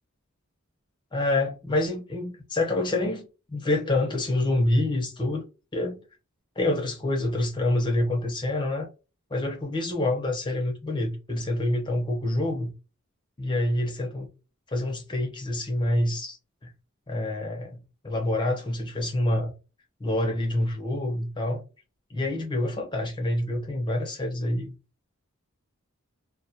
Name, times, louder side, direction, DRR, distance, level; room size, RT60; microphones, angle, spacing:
voice 1, 1.1-5.4 5.7-6.0 6.6-8.9 9.3-12.7 13.4-14.3 14.7-16.4 17.1-17.8 18.0-19.5 20.0-21.6 22.1-24.7, left 1 dB, 20° left, 0.5 m, -27 dB
2.2 x 2.1 x 2.6 m
head